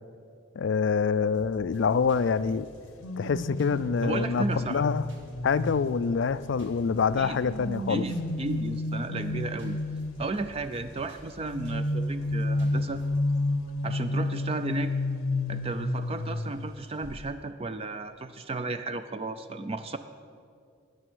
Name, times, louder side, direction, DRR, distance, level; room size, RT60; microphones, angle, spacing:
voice 1, 0.6-2.7 3.2-5.1 5.4-8.0, left 5 dB, 60° left, 16 dB, 0.3 m, -26 dB
sound 1, 1.3-13.3, equal, 60° right, 2.1 m, -51 dB
sound 2, 3.0-6.6 7.2-10.5 11.5-16.7 17.0-17.3, left 2 dB, 80° left, 0.7 m, -31 dB
voice 2, 4.0-4.8 7.2-7.4 7.9-9.8 10.2-13.0 13.8-14.9 15.5-20.0, right 2 dB, 25° right, 10 dB, 0.4 m, -34 dB
19.0 x 6.9 x 6.2 m, 2.3 s
head